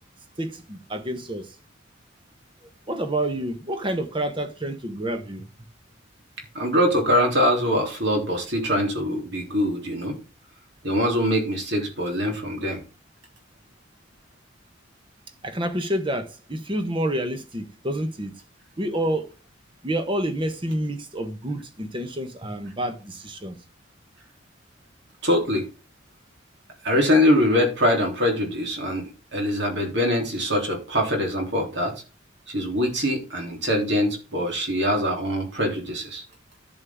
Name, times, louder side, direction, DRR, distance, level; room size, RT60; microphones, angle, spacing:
voice 1, 0.4-1.5 2.9-5.5 15.4-18.4 18.8-19.3 19.8-23.6, right 1 dB, 25° right, 1.1 m, -28 dB
voice 2, 6.5-10.2 10.8-12.8 25.2-25.7 26.8-32.0 32.5-36.2, equal, 55° right, 3.3 m, -23 dB
10.5 x 7.1 x 3.6 m
head